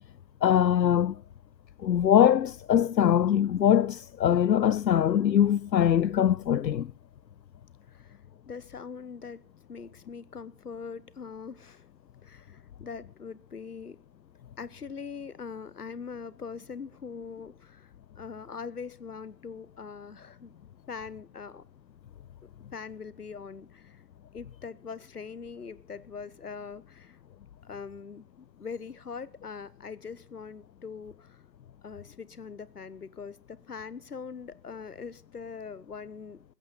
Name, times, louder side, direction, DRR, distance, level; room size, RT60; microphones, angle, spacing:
voice 1, 0.4-1.2 1.8-6.9, left 10 dB, 85° left, 0.6 m, -22 dB
voice 2, 7.9-8.2 8.5-9.4 9.7-11.9 12.2-14.0 14.6-20.5 20.9-21.6 22.7-24.0 24.3-27.2 27.6-31.4 31.8-36.4, left 5 dB, 65° left, 1.1 m, -42 dB
17.0 x 14.5 x 4.0 m
figure-of-eight pair, 155°, 50 cm